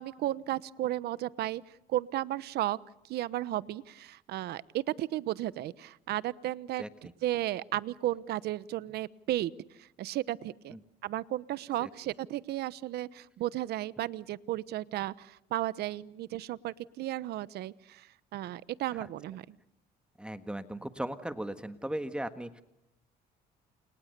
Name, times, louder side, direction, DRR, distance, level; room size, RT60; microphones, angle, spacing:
voice 1, 0.0-1.6 1.9-2.8 3.1-9.5 9.8-10.8 11.0-18.1 18.3-19.6, right 14 dB, 75° right, 18 dB, 1.0 m, -34 dB
voice 2, 20.2-22.6, right 1 dB, 5° right, 9 dB, 1.6 m, -37 dB
29.5 x 27.5 x 6.8 m, 0.88 s
cardioid pair, 110°, 17 cm